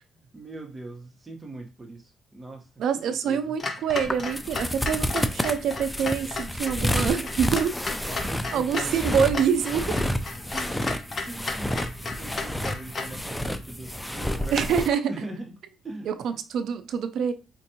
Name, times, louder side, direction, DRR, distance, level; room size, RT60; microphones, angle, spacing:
voice 1, 0.3-2.7 3.0-3.5 6.8-7.3 7.8-9.3 9.9-10.0 10.5-10.8 11.2-11.7 12.2-15.6 15.8-16.4, right 2 dB, 25° right, 1.0 m, -41 dB
voice 2, 2.8-7.7 8.5-10.0 14.5-15.1 16.1-17.3, right 7 dB, 75° right, 0.4 m, -26 dB
Clock, 3.6-13.2, left 3 dB, 40° left, 0.8 m, -34 dB
sound 1, 4.0-14.9, left 1 dB, 5° left, 0.4 m, -30 dB
4.5 x 2.5 x 2.8 m
cardioid pair, 90°, 0 cm